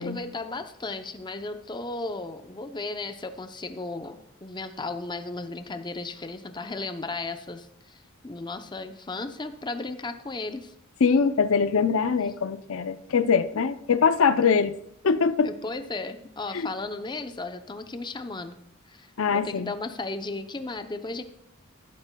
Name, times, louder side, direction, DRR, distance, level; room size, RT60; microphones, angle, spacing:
voice 1, 0.0-10.7 15.4-18.6 18.8-21.2, left 3 dB, 20° left, 8 dB, 0.6 m, -35 dB
voice 2, 11.0-14.8 15.0-15.5 16.5-16.7 19.2-19.7, left 5 dB, 70° left, 12 dB, 0.5 m, -23 dB
12.0 x 12.0 x 2.3 m, 0.76 s
head